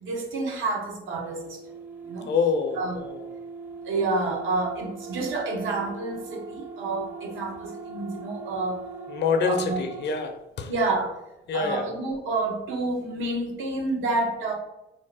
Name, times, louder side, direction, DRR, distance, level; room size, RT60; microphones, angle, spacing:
voice 1, 0.0-1.6 2.1-2.3 2.8-3.0 3.8-8.8 9.4-9.8 10.7-11.2 11.5-14.5, right 3 dB, 80° right, 0.8 m, -29 dB
sound 1, 1.2-10.3, right 5 dB, 10° right, 0.4 m, -40 dB
voice 2, 2.3-3.2 9.1-10.7 11.5-11.9, left 5 dB, 60° left, 0.5 m, -26 dB
2.7 x 2.1 x 4.0 m
cardioid pair, 90°, 20 cm